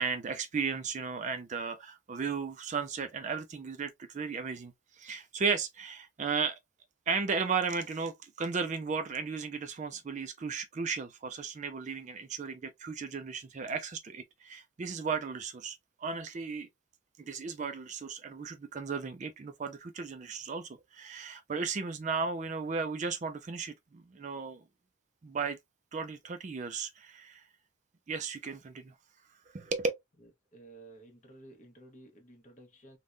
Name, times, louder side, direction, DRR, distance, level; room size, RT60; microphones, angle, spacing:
voice 1, 0.0-6.6 7.1-16.7 17.2-24.6 25.2-25.6 25.9-27.4 28.1-28.9 29.5-29.9, right 5 dB, 35° right, 0.3 m, -35 dB
voice 2, 30.5-33.0, right 2 dB, 35° left, 1.0 m, -53 dB
3.4 x 2.2 x 2.5 m
head